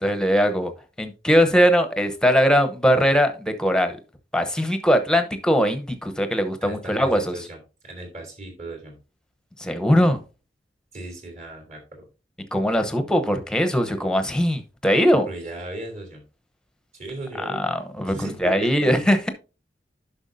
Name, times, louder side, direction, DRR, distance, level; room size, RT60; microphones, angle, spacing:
voice 1, 0.0-0.7 1.0-4.0 4.3-7.3 9.6-10.2 12.5-15.3 17.4-18.1 18.4-19.3, equal, 5° left, 0.9 m, -20 dB
voice 2, 6.6-7.6 7.8-9.0 10.9-12.0 15.3-16.2 16.9-17.6 18.1-19.1, right 2 dB, 45° right, 3.2 m, -37 dB
10.5 x 5.8 x 2.7 m
head